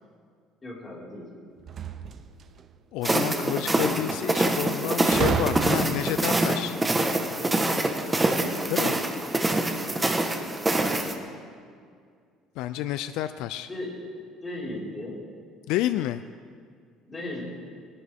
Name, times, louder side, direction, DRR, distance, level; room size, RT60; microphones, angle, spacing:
voice 1, 0.6-1.3 13.7-14.0 14.4-15.2 17.0-17.4, left 1 dB, 15° left, -6 dB, 4.9 m, -36 dB
sound 1, 1.6-2.6 5.1-6.2, right 6 dB, 35° right, 0.7 m, -29 dB
voice 2, 2.9-6.8 8.7-9.0 12.6-13.7 15.7-16.2, left 13 dB, 70° left, 11 dB, 0.5 m, -29 dB
sound 2, 3.0-11.1, right 2 dB, 10° right, 1.3 m, -25 dB
22.5 x 17.5 x 3.6 m, 2.1 s
cardioid pair, 165°, 0 cm